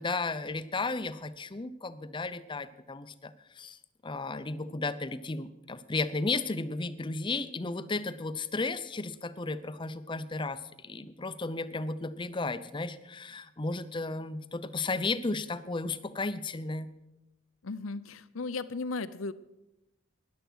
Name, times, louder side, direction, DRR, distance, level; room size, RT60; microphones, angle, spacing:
voice 1, 0.0-3.8 4.0-16.9, left 3 dB, 25° left, 13 dB, 0.6 m, -34 dB
voice 2, 17.6-19.3, left 3 dB, 85° left, 15 dB, 0.7 m, -36 dB
13.5 x 10.5 x 6.3 m, 0.95 s
head